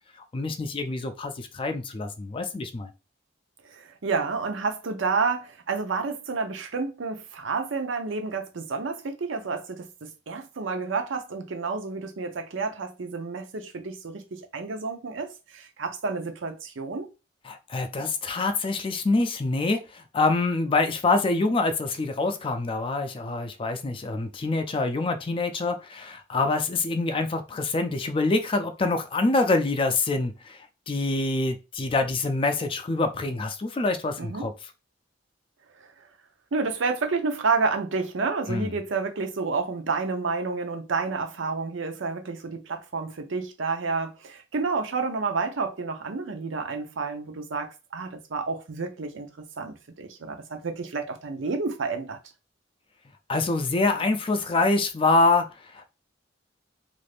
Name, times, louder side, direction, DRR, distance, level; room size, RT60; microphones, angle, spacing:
voice 1, 0.3-2.9 17.5-30.6 30.9-34.5 38.5-38.7 53.3-55.5 55.7-55.9, left 3 dB, 30° left, 0.4 m, -25 dB
voice 2, 3.7-17.1 34.2-34.5 36.5-52.2, right 4 dB, 80° right, 0.6 m, -30 dB
2.5 x 2.5 x 3.3 m
head